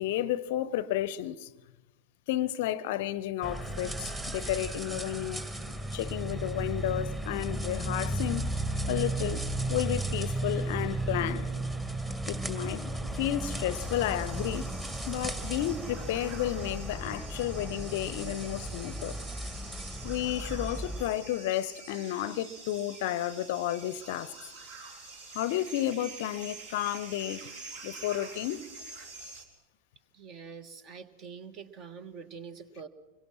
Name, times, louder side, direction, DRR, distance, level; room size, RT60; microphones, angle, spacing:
voice 1, 0.0-1.5 2.3-5.4 5.9-8.5 8.9-11.5 12.3-14.7 15.1-19.2 20.0-24.3 25.3-27.5 27.8-28.6, left 12 dB, 50° left, 0.7 m, -32 dB
sound 1, 3.4-21.1, right 1 dB, 10° right, 1.9 m, -35 dB
sound 2, 13.7-29.4, right 3 dB, 55° right, 3.5 m, -47 dB
voice 2, 30.1-32.9, right 6 dB, 35° right, 1.5 m, -45 dB
25.5 x 22.5 x 6.0 m
figure-of-eight pair, 90°, 0 cm